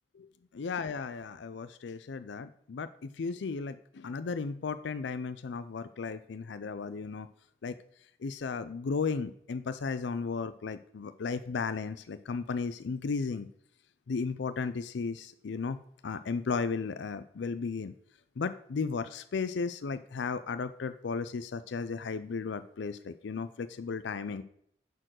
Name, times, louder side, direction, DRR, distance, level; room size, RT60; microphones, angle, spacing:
voice 1, 0.5-7.3 7.6-7.7 8.2-13.5 14.1-17.9 18.4-24.4, left 5 dB, 70° left, 12 dB, 0.4 m, -35 dB
9.8 x 4.6 x 6.3 m, 0.70 s
head